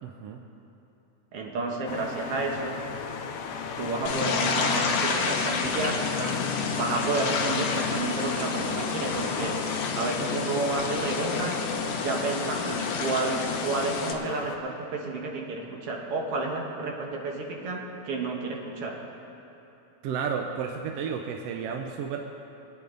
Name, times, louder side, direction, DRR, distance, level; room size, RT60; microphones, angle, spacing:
voice 1, 0.0-0.4 20.0-22.2, right 6 dB, 80° right, 4 dB, 1.4 m, -32 dB
voice 2, 1.3-2.8 3.8-6.4 6.7-9.7 10.0-11.6 12.0-19.0, right 3 dB, 55° right, 0 dB, 2.1 m, -31 dB
sound 1, 1.9-14.6, left 6 dB, 85° left, 1.2 m, -37 dB
sound 2, 4.1-14.1, left 5 dB, 65° left, 1.7 m, -29 dB
23.0 x 9.3 x 3.9 m, 2.9 s
omnidirectional pair, 3.5 m